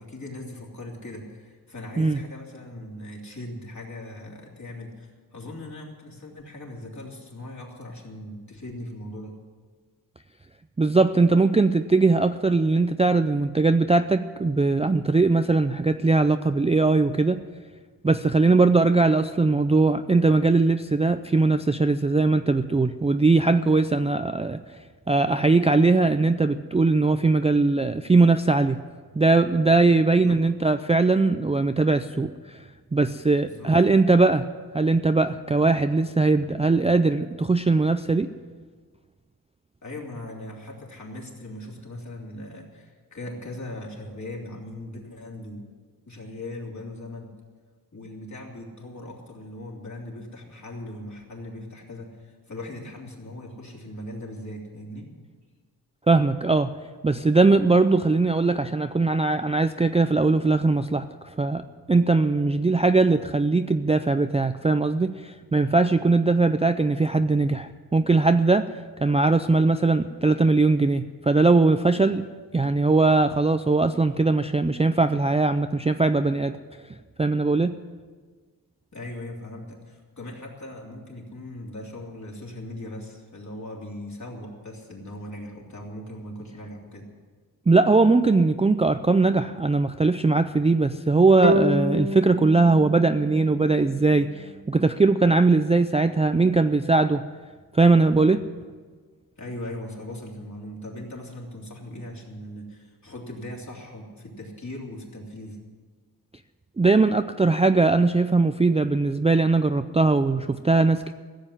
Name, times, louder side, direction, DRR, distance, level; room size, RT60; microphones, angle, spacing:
voice 1, 0.0-9.3 29.9-30.4 33.4-33.7 39.8-45.6 46.1-47.3 47.9-55.1 78.9-87.1 99.4-105.6, left 1 dB, 45° left, -2 dB, 3.3 m, -39 dB
voice 2, 10.8-17.4 18.0-24.6 25.1-28.8 29.2-32.6 32.9-38.3 56.1-56.8 57.0-61.6 61.9-68.7 69.0-72.3 72.5-76.6 77.2-77.8 87.7-97.3 97.7-98.4 106.8-111.1, right 3 dB, 15° right, 9 dB, 0.4 m, -20 dB
sound 1, 91.4-94.7, right 1 dB, 35° right, 0.8 m, -28 dB
15.0 x 7.8 x 10.0 m, 1.5 s
wide cardioid pair, 115°, 38 cm